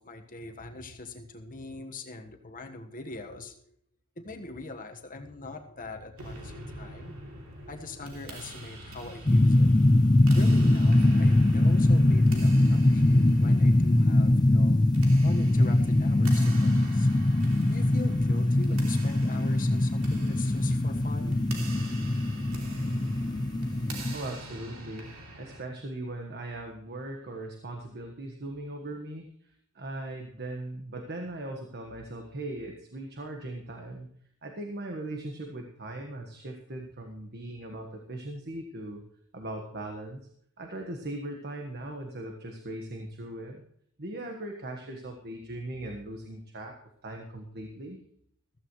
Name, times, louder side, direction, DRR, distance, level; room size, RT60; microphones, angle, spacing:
voice 1, 0.0-3.5 4.2-7.1 7.7-9.7 10.3-14.8 15.2-17.1 17.7-21.5, left 2 dB, 40° left, 5 dB, 1.4 m, -42 dB
sound 1, 6.2-25.6, right 1 dB, 65° right, 2.9 m, -44 dB
sound 2, 9.3-24.2, left 1 dB, 20° left, 0.4 m, -22 dB
voice 2, 24.1-34.1 34.4-39.0 39.3-40.2 40.6-43.6 44.0-46.8 47.0-48.0, right 1 dB, 50° right, 2 dB, 1.4 m, -39 dB
15.0 x 14.5 x 3.1 m, 0.66 s
head